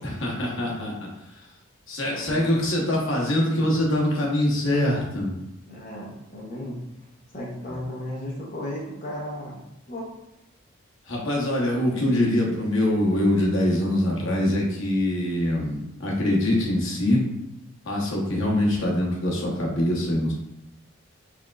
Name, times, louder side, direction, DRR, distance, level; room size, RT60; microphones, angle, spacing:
voice 1, 0.0-1.5 1.9-5.3 7.7-7.8 11.0-17.2 17.8-20.3, left 1 dB, 65° left, -3 dB, 1.0 m, -24 dB
voice 2, 2.1-2.5 5.7-9.6 9.9-10.1, left 1 dB, 40° left, -5 dB, 0.8 m, -35 dB
4.8 x 3.5 x 2.4 m, 0.88 s
head